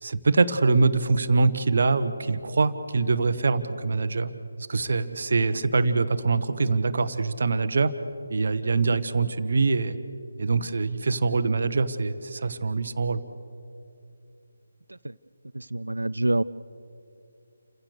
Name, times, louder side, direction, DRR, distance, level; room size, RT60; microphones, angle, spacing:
voice 1, 0.0-4.3 4.7-7.9 8.3-10.0 10.4-13.2, right 4 dB, 50° right, 12 dB, 1.1 m, -24 dB
voice 2, 15.5-16.4, right 2 dB, 70° right, 15 dB, 0.5 m, -26 dB
29.0 x 16.0 x 6.7 m, 2.5 s
figure-of-eight pair, 150°, 0 cm